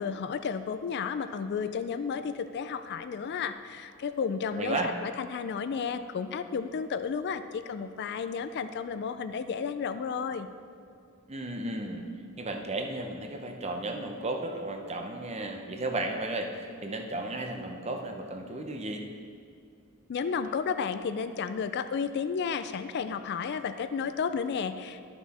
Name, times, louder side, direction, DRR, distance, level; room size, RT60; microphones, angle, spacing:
voice 1, 0.0-10.5 20.1-25.0, left 6 dB, 50° left, 11 dB, 0.3 m, -32 dB
voice 2, 4.6-4.9 11.3-12.1 12.4-19.0, right 2 dB, 30° right, 3 dB, 0.7 m, -34 dB
11.5 x 5.9 x 4.2 m, 2.4 s
head